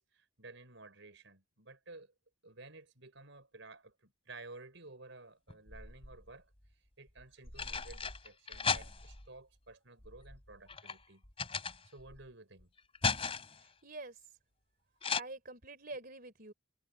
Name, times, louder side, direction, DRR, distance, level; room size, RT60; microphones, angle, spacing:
voice 1, 0.0-2.1 2.4-6.5 7.0-11.2 11.6-12.7, right 3 dB, 65° right, 5.0 m, -54 dB
sound 1, 5.5-6.3 7.2-9.3 10.0-12.2 12.6-13.7 15.0-15.2, left 5 dB, 30° left, 3.2 m, -37 dB
voice 2, 13.5-14.4 15.2-16.5, right 2 dB, 45° right, 3.4 m, -47 dB
head